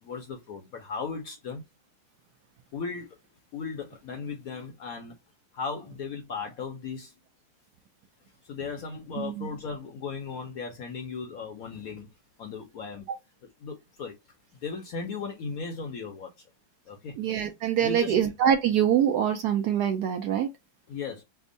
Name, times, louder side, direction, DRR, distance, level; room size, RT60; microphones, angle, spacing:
voice 1, 0.0-1.6 2.7-3.2 3.5-5.1 5.5-7.1 8.4-12.1 12.4-13.1 13.6-14.2 14.5-16.3 16.9-17.2 17.8-18.2 20.9-21.2, left 5 dB, 65° left, 0.9 m, -36 dB
voice 2, 9.2-9.5 17.2-20.5, right 9 dB, 70° right, 0.9 m, -24 dB
3.5 x 2.1 x 3.7 m
omnidirectional pair, 2.1 m